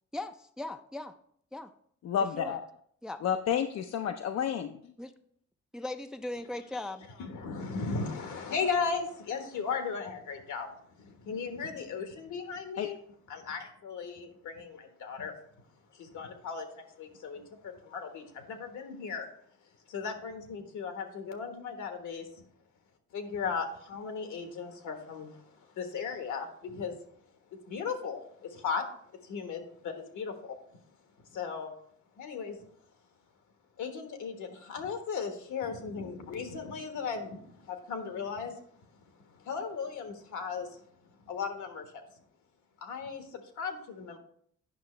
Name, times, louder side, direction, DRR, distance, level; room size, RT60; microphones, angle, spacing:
voice 1, 0.1-1.1 1.5-1.7 2.4-2.6 3.0-3.2 5.0-5.1 5.7-7.1, left 2 dB, ahead, 8 dB, 0.4 m, -38 dB
voice 2, 2.0-2.6 3.2-4.9 12.8-12.9, left 8 dB, 55° left, 6 dB, 0.5 m, -30 dB
voice 3, 7.2-13.0 13.3-15.3 15.9-19.3 19.9-22.5 23.1-27.0 27.5-28.8 29.2-30.6 31.3-31.7 32.2-32.6 33.8-38.6 39.4-40.8 41.3-41.9 42.8-44.2, left 5 dB, 80° left, 6 dB, 1.4 m, -36 dB
9.1 x 5.7 x 3.2 m, 0.64 s
cardioid pair, 90°, 30 cm